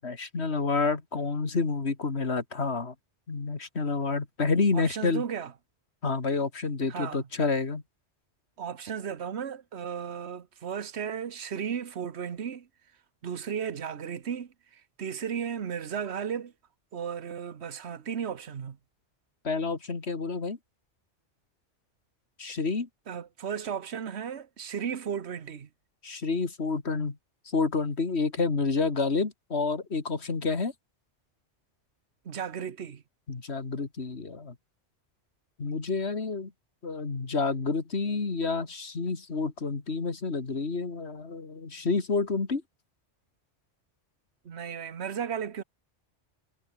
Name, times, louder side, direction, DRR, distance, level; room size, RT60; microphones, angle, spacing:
voice 1, 0.0-2.9 3.3-5.2 6.0-7.8 19.4-20.6 22.4-22.9 26.0-27.2 27.5-30.7 33.3-34.5 35.6-36.5 36.8-42.6, left 4 dB, 65° left, 2.5 m, -29 dB
voice 2, 4.7-5.5 6.9-7.3 8.6-12.7 13.2-16.5 16.9-18.8 23.1-25.7 32.2-33.0 44.4-45.6, right 7 dB, 65° right, 1.4 m, -35 dB
omnidirectional pair, 1.2 m